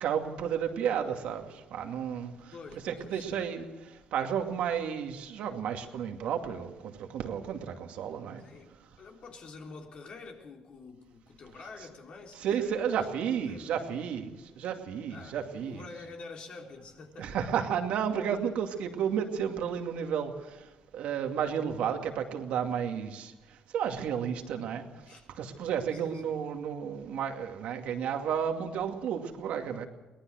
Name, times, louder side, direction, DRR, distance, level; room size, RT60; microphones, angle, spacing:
voice 1, 0.0-2.3 2.8-3.7 4.1-8.4 12.4-15.8 17.2-20.3 20.9-23.3 23.7-24.8 25.4-29.9, right 8 dB, 75° right, 2.4 m, -32 dB
voice 2, 2.5-3.4 8.4-13.0 13.5-13.9 15.1-17.4 25.0-25.3 25.9-26.3, left 4 dB, 60° left, 3.9 m, -48 dB
23.0 x 18.5 x 6.4 m
supercardioid pair, 75°, 2 cm